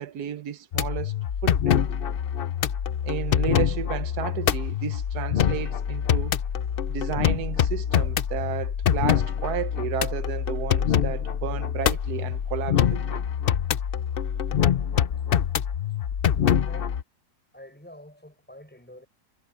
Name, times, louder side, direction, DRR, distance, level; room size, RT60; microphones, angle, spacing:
voice 1, 0.0-1.8 3.0-6.4 6.9-13.2, right 11 dB, 70° right, 1.4 m, -33 dB
sound 1, 0.7-17.0, left 9 dB, 65° left, 0.5 m, -25 dB
voice 2, 16.2-17.0 17.5-19.1, left 1 dB, 5° left, 5.7 m, -47 dB
omnidirectional pair, 1.8 m